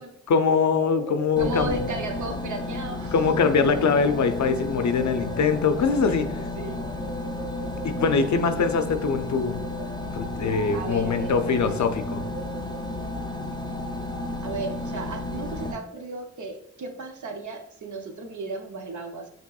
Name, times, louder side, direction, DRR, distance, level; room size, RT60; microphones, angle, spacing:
voice 1, 0.3-1.8 3.1-6.2 7.8-9.6 10.1-12.2, left 5 dB, 70° left, 8 dB, 0.5 m, -23 dB
sound 1, 0.6-14.6, right 2 dB, 15° right, 1.3 m, -42 dB
sound 2, 1.4-15.7, left 2 dB, 15° left, 0.4 m, -33 dB
voice 2, 1.4-3.1 5.9-6.8 10.7-11.8 14.4-19.3, right 2 dB, 75° right, 4 dB, 0.7 m, -35 dB
5.3 x 2.9 x 2.3 m, 0.78 s
cardioid pair, 60°, 30 cm